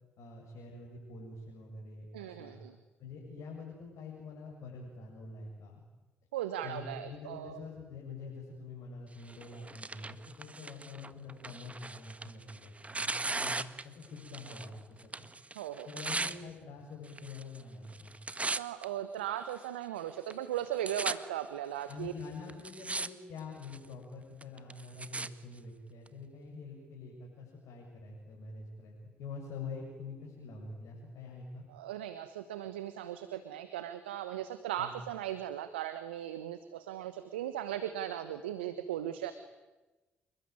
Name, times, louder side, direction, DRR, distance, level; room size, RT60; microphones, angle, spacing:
voice 1, 0.2-2.6 3.0-5.8 6.6-15.3 15.9-18.1 21.9-31.6 34.8-34.9, left 4 dB, 65° left, -1 dB, 7.3 m, -46 dB
voice 2, 2.1-2.8 6.3-7.6 15.5-15.9 18.4-22.1 31.7-39.3, right 11 dB, 85° right, 11 dB, 1.2 m, -38 dB
Tearing, 9.3-14.7 15.0-16.4 17.1-17.6 17.9-18.8 19.5-19.6 20.3-20.4 20.6-21.1 21.9-22.0 22.5-23.1 23.4-23.9 24.4-25.3 26.1-26.2, right 3 dB, 25° right, 1.6 m, -38 dB
28.0 x 22.0 x 9.6 m, 1.1 s
hypercardioid pair, 45°, 6 cm